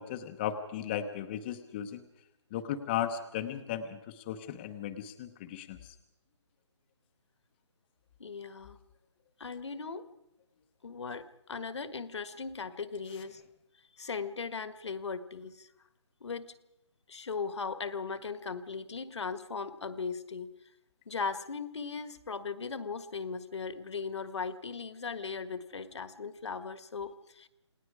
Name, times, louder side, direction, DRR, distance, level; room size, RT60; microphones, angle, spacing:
voice 1, 0.0-2.0 2.5-4.0 4.3-5.8, left 10 dB, 20° left, 6 dB, 0.9 m, -36 dB
voice 2, 8.2-8.8 9.4-10.1 10.8-13.4 14.0-15.7 16.2-16.5 17.1-20.5 21.0-27.5, left 5 dB, 65° left, 12 dB, 1.6 m, -38 dB
28.0 x 19.0 x 4.9 m, 0.89 s
figure-of-eight pair, 160°, 16 cm